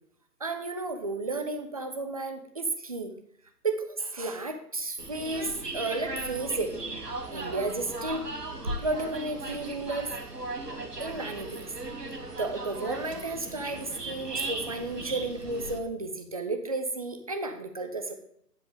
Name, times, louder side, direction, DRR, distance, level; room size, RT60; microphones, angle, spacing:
voice 1, 0.4-3.1 3.6-6.7 7.3-8.3 8.8-10.1 11.0-11.7 12.4-18.1, right 3 dB, 25° right, 6 dB, 0.6 m, -32 dB
sound 1, 5.0-15.8, right 2 dB, 75° right, 1.9 m, -37 dB
9.9 x 7.5 x 3.6 m, 0.73 s
figure-of-eight pair, 135°, 47 cm